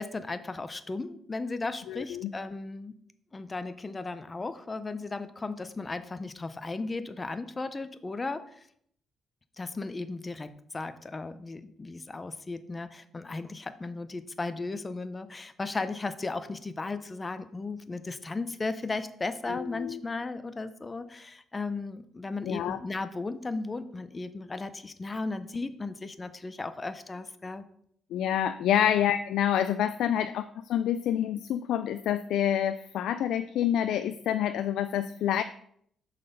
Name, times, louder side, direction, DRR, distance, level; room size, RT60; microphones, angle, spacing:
voice 1, 0.0-2.9 3.3-8.6 9.6-27.6, left 3 dB, 25° left, 11 dB, 0.6 m, -36 dB
voice 2, 1.9-2.3 19.5-20.0 22.4-22.8 28.1-35.4, left 10 dB, 80° left, 10 dB, 0.3 m, -27 dB
6.5 x 4.2 x 5.3 m, 0.67 s
cardioid pair, 90°, 0 cm